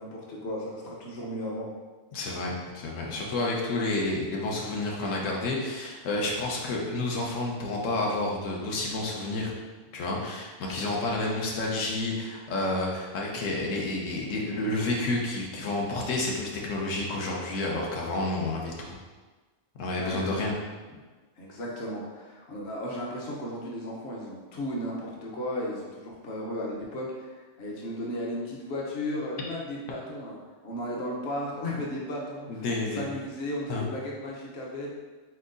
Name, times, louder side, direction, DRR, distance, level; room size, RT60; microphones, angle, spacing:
voice 1, 0.0-1.7 20.0-20.3 21.4-30.4 30.6-34.9, left 1 dB, 60° left, -3 dB, 1.0 m, -35 dB
voice 2, 2.1-9.5 9.9-18.9 19.8-20.5 32.5-33.0 33.7-33.9, left 2 dB, 90° left, -2 dB, 1.1 m, -30 dB
4.4 x 3.9 x 2.5 m, 1.3 s
omnidirectional pair, 1.3 m